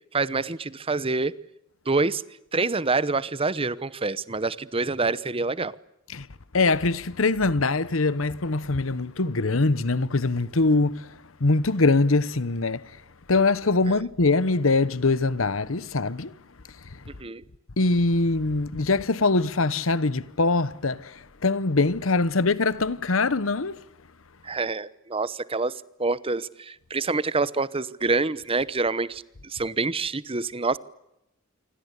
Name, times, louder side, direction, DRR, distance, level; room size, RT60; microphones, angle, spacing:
voice 1, 0.1-1.3 1.9-2.2 2.5-5.7 13.9-14.0 17.2-17.4 24.4-30.8, right 3 dB, 25° right, 0.9 m, -26 dB
voice 2, 6.5-12.8 13.3-16.3 17.8-23.8, left 3 dB, 80° left, 1.1 m, -23 dB
27.5 x 24.5 x 8.3 m
head